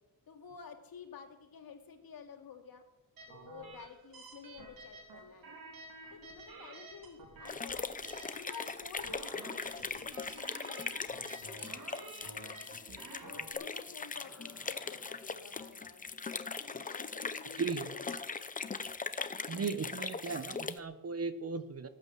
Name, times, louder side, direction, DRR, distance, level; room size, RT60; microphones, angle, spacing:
voice 1, 0.3-2.8 3.3-5.6 6.1-7.9 8.3-12.6 13.1-16.0 16.6-18.5, left 6 dB, 75° left, 3 dB, 2.5 m, -52 dB
sound 1, 3.2-13.5, right 2 dB, 70° right, 3.0 m, -51 dB
sound 2, 5.2-5.8 6.1-8.5 10.1-10.3 13.7-16.2 18.4-18.5, left 1 dB, ahead, 2.3 m, -64 dB
sound 3, 7.4-20.8, left 4 dB, 25° left, 0.7 m, -40 dB
voice 2, 17.6-17.9 19.5-21.9, right 4 dB, 40° right, 11 dB, 1.0 m, -36 dB
19.0 x 9.1 x 7.5 m, 0.98 s
wide cardioid pair, 155°, 35 cm